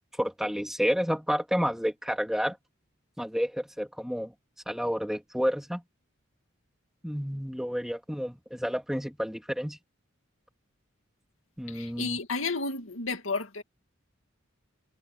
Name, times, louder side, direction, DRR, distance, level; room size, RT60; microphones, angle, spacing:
voice 1, 0.2-2.6 3.2-4.3 4.7-5.8 7.0-9.8 11.6-12.2, equal, ahead, 3.0 m, -30 dB
voice 2, 11.7-13.6, left 3 dB, 75° left, 2.2 m, -32 dB
head